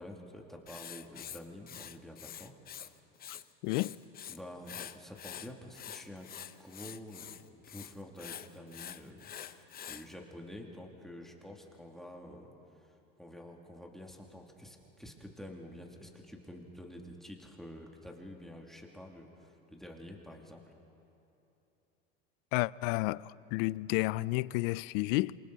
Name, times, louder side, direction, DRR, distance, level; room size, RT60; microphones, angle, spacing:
voice 1, 0.0-2.6 4.3-12.5 12.8-20.6, left 1 dB, ahead, 2.6 m, -49 dB
Writing, 0.7-2.9 3.2-4.4 4.7-10.1, left 9 dB, 30° left, 0.9 m, -46 dB
voice 2, 3.6-4.0 22.5-25.4, left 21 dB, 65° left, 0.5 m, -31 dB
27.0 x 24.5 x 4.1 m
hypercardioid pair, 95°, 30 cm